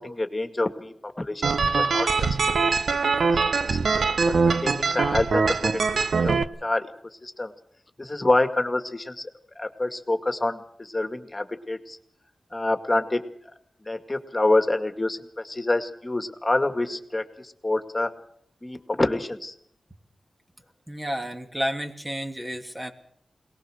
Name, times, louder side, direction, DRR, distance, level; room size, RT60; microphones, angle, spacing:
voice 1, 0.0-2.4 3.6-3.8 4.3-6.9 7.2-7.5 8.0-9.3 9.6-12.0 12.5-13.2 13.8-18.1 18.6-19.5, left 2 dB, 30° left, 7 dB, 2.2 m, -27 dB
sound 1, 1.4-6.4, right 4 dB, 80° right, 0.9 m, -23 dB
voice 2, 20.9-22.9, equal, 15° right, 4 dB, 2.9 m, -31 dB
22.0 x 19.0 x 6.6 m, 0.70 s
cardioid pair, 45°, 0 cm